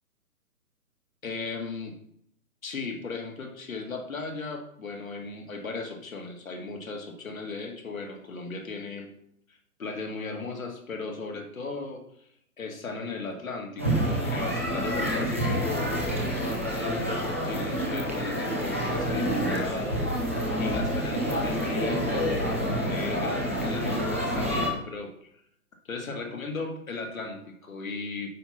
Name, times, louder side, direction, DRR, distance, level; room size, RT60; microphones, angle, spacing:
voice 1, 1.2-2.0 2.6-9.1 9.5-12.3 12.6-25.3 25.8-28.3, left 3 dB, 60° left, 3 dB, 2.3 m, -36 dB
sound 1, 13.8-24.7, equal, 10° right, 0.5 m, -28 dB
9.2 x 5.5 x 5.7 m, 0.72 s
figure-of-eight pair, 135°, 46 cm